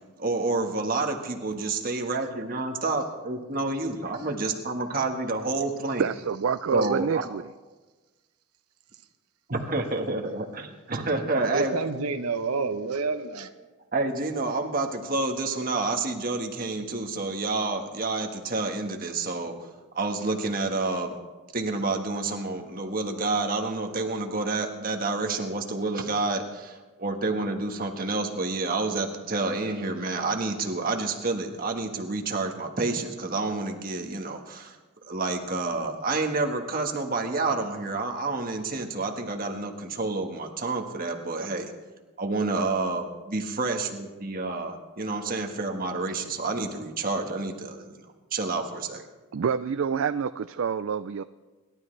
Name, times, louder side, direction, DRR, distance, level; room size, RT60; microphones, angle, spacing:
voice 1, 0.2-6.1 6.7-7.2 9.5-11.8 13.9-19.7 19.9-21.2 21.5-34.8 35.0-41.7 42.2-48.0 48.3-49.0, right 3 dB, 40° right, 3 dB, 1.5 m, -29 dB
voice 2, 6.0-7.4 49.3-51.2, right 6 dB, 65° right, 12 dB, 0.4 m, -27 dB
voice 3, 11.3-13.5, right 4 dB, 90° right, 9 dB, 0.9 m, -29 dB
27.0 x 12.0 x 3.3 m, 1.2 s
head